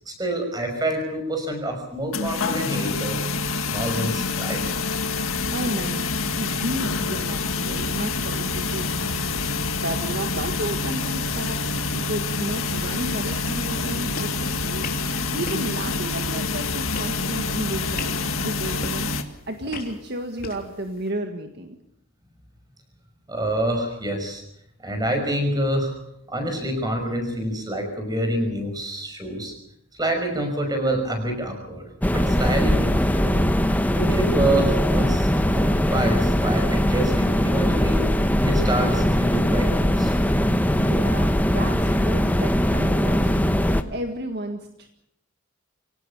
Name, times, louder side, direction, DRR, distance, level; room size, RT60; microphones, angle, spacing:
voice 1, 0.0-3.2 3.7-4.6 23.3-24.4 24.8-25.9 26.3-29.5 29.9-33.4 33.9-38.0 38.4-40.2, right 1 dB, 20° right, 5 dB, 5.9 m, -27 dB
sound 1, 2.1-19.2, left 3 dB, 85° left, 1.9 m, -27 dB
voice 2, 5.5-6.1 6.4-14.9 15.3-21.8 40.7-43.4 43.9-44.9, right 1 dB, 55° right, 5 dB, 1.8 m, -33 dB
sound 2, 14.1-21.1, left 3 dB, 45° left, 3.4 m, -41 dB
sound 3, 32.0-43.8, equal, 10° left, 1.0 m, -21 dB
24.5 x 18.0 x 7.1 m, 0.76 s
head